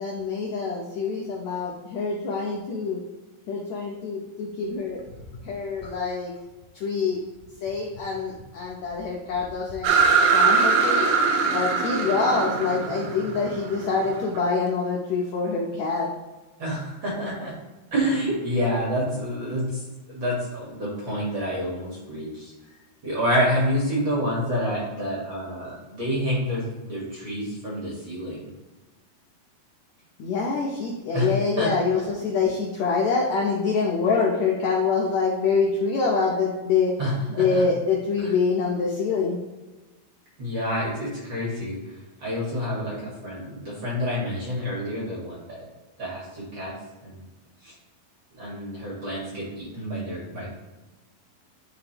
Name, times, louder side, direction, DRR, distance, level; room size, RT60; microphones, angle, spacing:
voice 1, 0.0-3.0 3.5-5.2 5.4-6.3 6.7-7.2 7.6-11.1 11.4-16.1 30.2-36.9 37.3-39.4, left 4 dB, 80° left, -2 dB, 1.5 m, -25 dB
sound 1, 9.8-14.4, right 5 dB, 90° right, 2.6 m, -22 dB
voice 2, 16.6-17.5 17.9-19.8 20.1-22.5 23.0-28.5 31.1-31.3 31.6-31.7 37.0-37.6 40.4-41.9 42.2-45.6 46.0-46.7 47.0-47.3 47.6-47.7 48.3-50.5, equal, 45° right, -5 dB, 1.8 m, -28 dB
11.0 x 3.8 x 3.0 m, 1.2 s
omnidirectional pair, 4.2 m